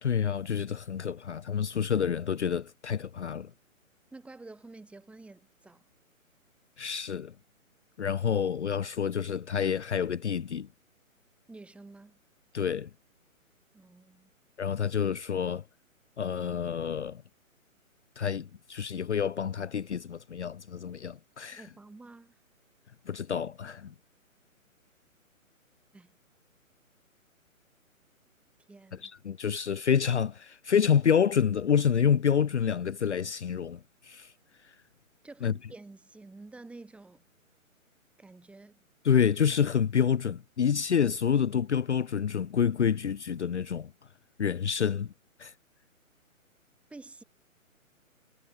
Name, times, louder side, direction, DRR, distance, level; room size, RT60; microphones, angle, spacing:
voice 1, 0.0-3.5 6.8-7.3 8.0-10.7 12.5-12.9 14.6-15.6 16.2-17.2 18.2-21.6 23.1-23.9 28.9-34.3 34.7-34.8 35.4-35.5 39.0-43.9 44.4-45.1 45.4-45.5, left 7 dB, 55° left, 0.7 m, -28 dB
voice 2, 4.1-5.8 11.5-12.2 13.7-14.3 21.5-22.4 25.9-26.1 28.7-29.1 35.2-37.2 38.2-38.8 46.9-47.2, right 3 dB, 5° right, 2.1 m, -49 dB
figure-of-eight pair, 135°, 42 cm